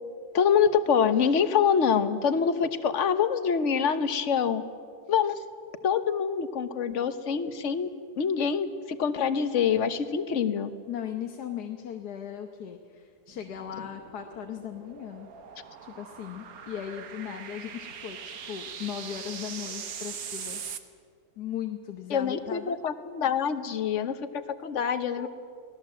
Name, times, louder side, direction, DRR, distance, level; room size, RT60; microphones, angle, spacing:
voice 1, 0.3-4.6 5.1-5.4 5.8-7.9 8.2-10.7 22.1-25.3, left 7 dB, 55° left, 11 dB, 1.3 m, -25 dB
voice 2, 10.9-15.3 15.8-20.6 21.4-22.8 25.2-25.3, left 9 dB, 90° left, 5 dB, 1.6 m, -38 dB
sound 1, 13.3-20.8, right 7 dB, 70° right, 1.6 m, -41 dB
24.5 x 17.5 x 7.6 m, 2.2 s
omnidirectional pair, 1.7 m